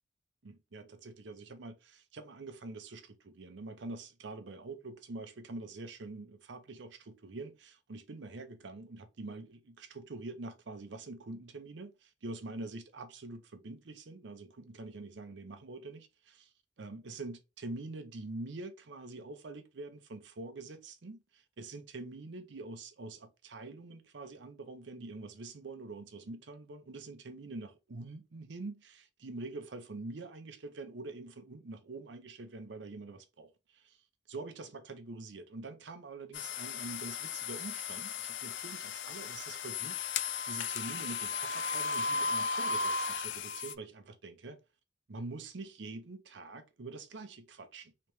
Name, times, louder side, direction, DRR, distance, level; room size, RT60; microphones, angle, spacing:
voice 1, 0.4-34.0 34.3-44.6 45.1-48.1, right 2 dB, 75° right, 0.6 m, -45 dB
sound 1, 36.3-43.7, left 4 dB, 85° left, 0.4 m, -35 dB
3.3 x 2.9 x 3.0 m
head